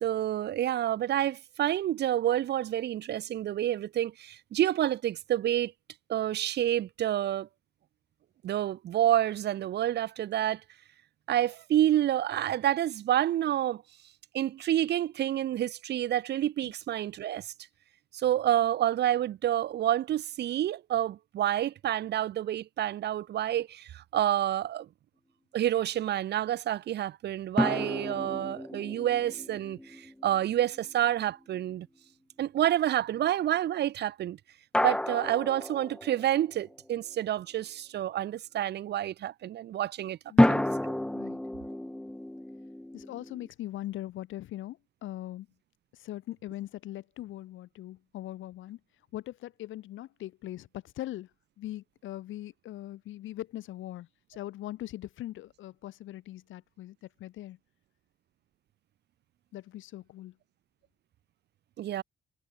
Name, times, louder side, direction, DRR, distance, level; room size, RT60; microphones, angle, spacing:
voice 1, 0.0-5.7 6.1-7.5 8.4-10.6 11.3-13.8 14.3-17.5 18.1-24.9 25.5-31.9 32.4-34.4 34.8-40.2 40.5-40.9 61.8-62.0, right 12 dB, 60° right, 0.5 m, -28 dB
sound 1, 27.6-30.9 34.7-36.7 40.4-43.5, left 1 dB, 5° left, 0.5 m, -30 dB
voice 2, 40.3-40.6 41.1-41.4 42.9-45.5 45.9-48.8 49.1-51.3 51.6-57.6 59.5-60.4, left 14 dB, 80° left, 1.2 m, -41 dB
cardioid pair, 90°, 20 cm